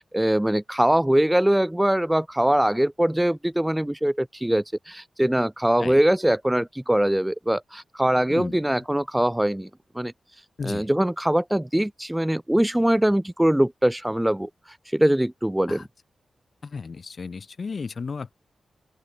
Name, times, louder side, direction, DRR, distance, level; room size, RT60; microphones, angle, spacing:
voice 1, 0.0-9.7 9.9-10.1 10.6-14.5 14.9-15.8, right 1 dB, 10° right, 0.5 m, -22 dB
voice 2, 8.3-8.6 10.6-10.9 15.7-15.9 16.6-18.4, left 5 dB, 55° left, 4.8 m, -34 dB
open air
cardioid pair, 80°, 0 cm